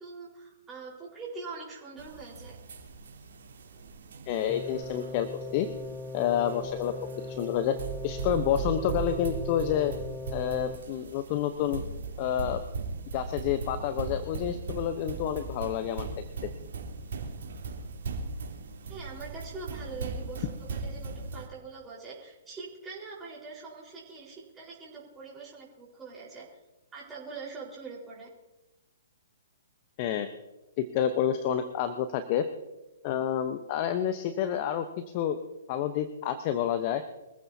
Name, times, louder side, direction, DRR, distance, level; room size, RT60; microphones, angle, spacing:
voice 1, 0.0-2.6 18.9-26.6 26.9-28.3, right 4 dB, 15° right, -7 dB, 4.4 m, -43 dB
sound 1, 2.0-21.5, right 4 dB, 60° right, 3.4 m, -39 dB
voice 2, 4.3-5.7 6.1-6.9 7.3-7.8 8.0-9.9 10.3-11.8 12.2-12.6 13.1-16.1 16.4-16.5 30.0-30.3 30.8-32.4 33.0-34.9 35.1-35.4 35.7-37.0, left 10 dB, 40° left, 10 dB, 0.9 m, -29 dB
sound 2, 4.5-10.8, left 3 dB, 5° left, 0.6 m, -40 dB
24.5 x 15.0 x 2.8 m, 1.1 s
figure-of-eight pair, 125°, 0 cm